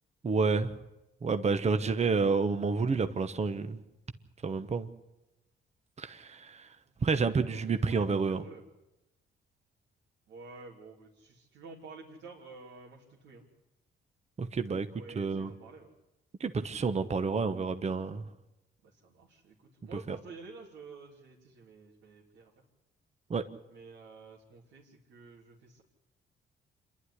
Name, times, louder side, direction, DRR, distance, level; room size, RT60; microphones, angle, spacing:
voice 1, 0.2-0.7 1.2-3.8 4.4-4.9 6.0-6.7 7.0-8.4 14.4-14.9 15.2-15.5 16.4-18.2 20.1-20.2 23.3-23.4, right 4 dB, 35° right, 9 dB, 1.1 m, -29 dB
voice 2, 7.1-8.7 10.3-13.5 14.7-15.9 18.8-22.5 23.7-25.8, right 4 dB, 85° right, -3 dB, 3.2 m, -50 dB
27.0 x 11.5 x 9.9 m, 0.95 s
cardioid pair, 90°, 20 cm